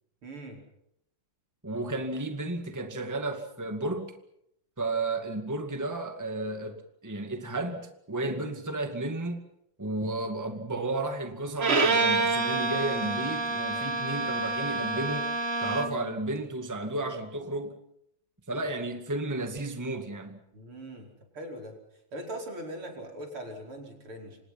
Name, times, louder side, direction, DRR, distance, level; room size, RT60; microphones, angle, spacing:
voice 1, 0.2-0.6 20.5-21.1 21.3-21.7 22.1-24.4, right 1 dB, 85° right, 2 dB, 5.9 m, -40 dB
voice 2, 1.6-4.1 4.8-9.4 9.8-15.3 15.6-17.8 18.5-20.4, right 2 dB, 10° right, 7 dB, 1.9 m, -33 dB
Bowed string instrument, 11.6-16.1, right 3 dB, 30° right, 2.0 m, -27 dB
28.5 x 26.0 x 5.9 m, 0.77 s
omnidirectional pair, 2.3 m